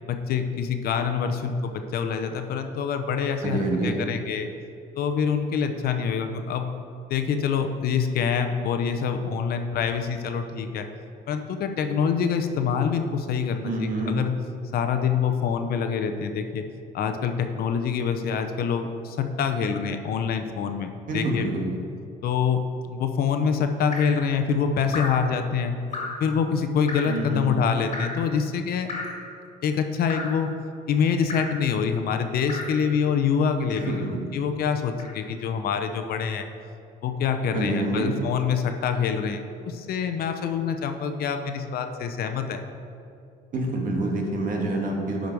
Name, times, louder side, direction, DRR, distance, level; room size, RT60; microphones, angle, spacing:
voice 1, 0.0-4.5 4.9-6.7 7.1-10.9 11.3-14.3 14.7-16.6 16.9-21.5 22.2-25.8 26.2-28.9 29.6-30.5 30.9-36.5 37.0-42.6, left 6 dB, 65° left, 7 dB, 0.8 m, -26 dB
voice 2, 3.4-4.0 13.6-14.2 21.1-21.7 27.0-27.5 33.7-34.2 37.5-38.1 43.5-45.3, right 2 dB, 55° right, 0 dB, 1.7 m, -27 dB
Drip, 23.9-24.2 24.9-25.3 25.9-26.3 26.9-27.2 27.9-28.3 28.9-29.3 30.1-30.4 31.3-31.6 32.5-32.8 33.7-34.1 35.0-35.2, left 3 dB, 40° left, 2.0 m, -34 dB
12.0 x 5.2 x 4.7 m, 2.6 s
cardioid pair, 110°, 17 cm